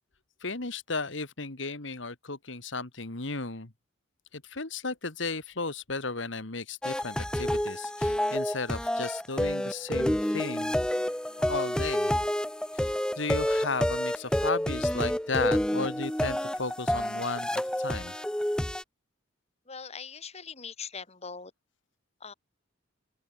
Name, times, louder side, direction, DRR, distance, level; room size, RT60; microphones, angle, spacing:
voice 1, 0.4-3.7 4.3-10.8 11.4-12.1 12.7-18.1, left 3 dB, 65° left, 2.1 m, -34 dB
sound 1, 6.8-18.8, equal, 5° left, 0.6 m, -29 dB
voice 2, 19.7-21.5 22.2-22.3, left 6 dB, 35° left, 2.6 m, -41 dB
open air
head